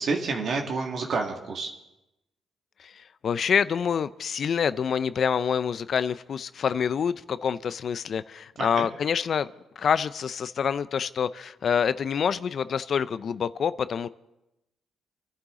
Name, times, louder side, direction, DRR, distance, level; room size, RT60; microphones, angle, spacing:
voice 1, 0.0-1.7 8.6-8.9, right 4 dB, 60° right, 1 dB, 1.9 m, -29 dB
voice 2, 2.8-9.5 9.8-14.1, left 7 dB, 55° left, 15 dB, 0.5 m, -27 dB
26.0 x 11.0 x 3.8 m, 0.91 s
cardioid pair, 90°, 0 cm